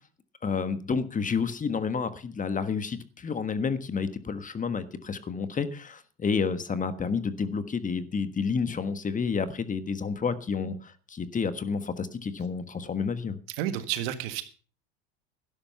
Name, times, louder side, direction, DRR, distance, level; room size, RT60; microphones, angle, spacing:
voice 1, 0.4-13.4, left 5 dB, 25° left, 13 dB, 1.4 m, -30 dB
voice 2, 13.6-14.4, right 11 dB, 75° right, 11 dB, 1.7 m, -30 dB
12.0 x 10.5 x 5.7 m, 0.40 s
hypercardioid pair, 90°, 31 cm